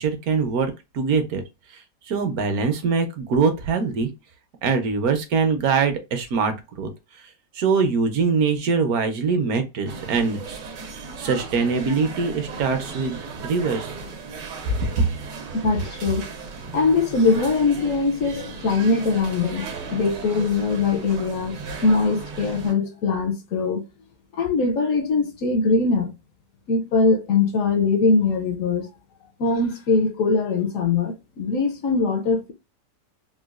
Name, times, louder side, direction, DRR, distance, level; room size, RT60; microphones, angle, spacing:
voice 1, 0.0-1.4 1.7-4.1 4.6-6.9 7.5-10.6 11.0-13.9, right 5 dB, 65° right, 1.0 m, -23 dB
sound 1, 9.9-22.7, right 4 dB, 85° right, 1.4 m, -36 dB
voice 2, 15.6-16.3 16.7-19.6 19.9-21.5 21.8-23.9 24.3-26.1 26.7-28.9 29.4-32.5, left 4 dB, 70° left, 0.8 m, -21 dB
3.8 x 2.3 x 2.3 m
omnidirectional pair, 1.8 m